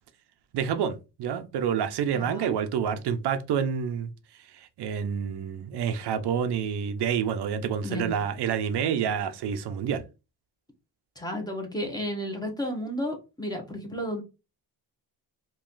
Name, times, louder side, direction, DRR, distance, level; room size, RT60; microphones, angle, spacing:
voice 1, 0.5-4.1 4.8-10.0, right 8 dB, 75° right, 0.7 m, -28 dB
voice 2, 2.1-2.6 7.8-8.1 11.2-14.2, equal, 10° left, 1.0 m, -32 dB
3.1 x 2.7 x 3.8 m
cardioid pair, 130°, 41 cm